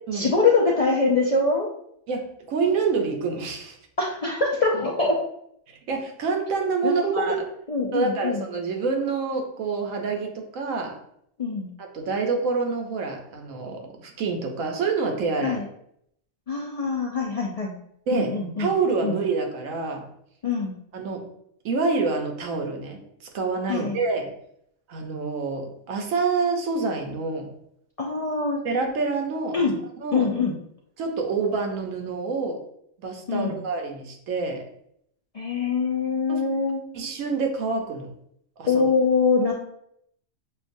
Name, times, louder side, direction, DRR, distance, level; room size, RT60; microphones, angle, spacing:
voice 1, 0.1-1.7 4.0-5.2 6.8-7.4 7.7-8.4 11.4-11.7 15.4-15.6 16.5-17.7 18.1-18.7 19.0-19.1 20.4-20.7 23.7-24.0 28.0-28.6 29.5-29.7 30.1-30.5 33.3-33.6 35.3-36.8 38.7-39.5, left 4 dB, 55° left, -3 dB, 0.4 m, -23 dB
voice 2, 2.1-3.8 5.9-7.5 7.9-11.0 11.8-15.6 18.1-18.3 18.6-20.1 20.9-21.2 21.6-23.0 23.3-24.3 24.9-27.5 28.6-29.7 30.0-30.3 31.0-32.6 33.0-34.6 36.3-36.4 36.9-38.1 38.6-38.8, right 4 dB, 85° right, 3 dB, 1.2 m, -27 dB
6.6 x 2.3 x 2.6 m, 0.72 s
omnidirectional pair, 1.3 m